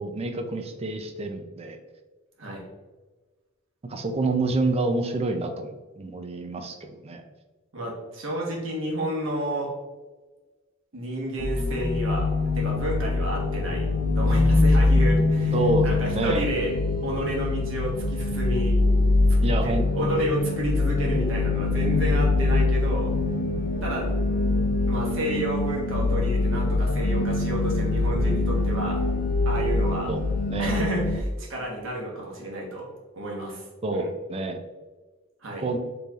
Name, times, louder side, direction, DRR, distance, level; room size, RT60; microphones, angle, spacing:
voice 1, 0.0-1.8 3.9-7.2 15.5-15.9 16.1-16.5 19.4-20.1 30.1-30.2 30.5-30.7 33.8-34.6 35.6-35.8, right 2 dB, 30° right, 6 dB, 0.4 m, -28 dB
voice 2, 7.7-9.7 10.9-13.9 14.1-15.5 15.8-16.7 17.0-18.8 19.6-23.1 23.8-24.1 24.9-29.0 29.4-30.1 30.6-32.9 33.1-33.7 33.9-34.1 35.4-35.8, right 1 dB, 70° right, -2 dB, 1.2 m, -31 dB
sound 1, 11.4-31.2, left 2 dB, 45° left, 0.4 m, -23 dB
4.7 x 3.2 x 2.4 m, 1.3 s
head